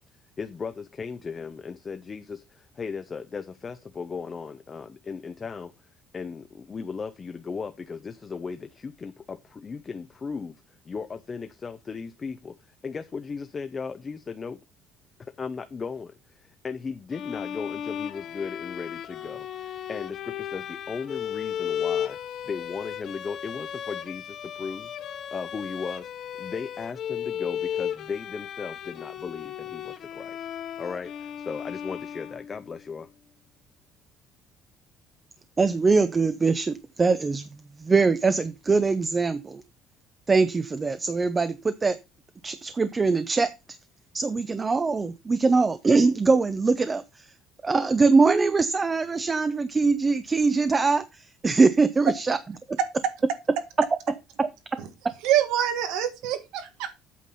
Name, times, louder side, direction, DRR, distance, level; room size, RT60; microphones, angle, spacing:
voice 1, 0.4-5.7 6.1-14.6 15.2-22.2 22.4-26.1 26.4-30.5 30.8-33.1, left 5 dB, 25° left, 0.6 m, -36 dB
sound 1, 17.1-32.8, left 9 dB, 50° left, 0.9 m, -35 dB
voice 2, 35.6-37.5 37.8-39.6 40.3-41.9 42.4-43.5 44.1-47.2 47.6-52.4 54.4-54.5, right 4 dB, 20° right, 0.6 m, -22 dB
voice 3, 55.2-56.9, right 11 dB, 90° right, 1.7 m, -25 dB
8.5 x 5.9 x 5.3 m
cardioid pair, 140°, 0 cm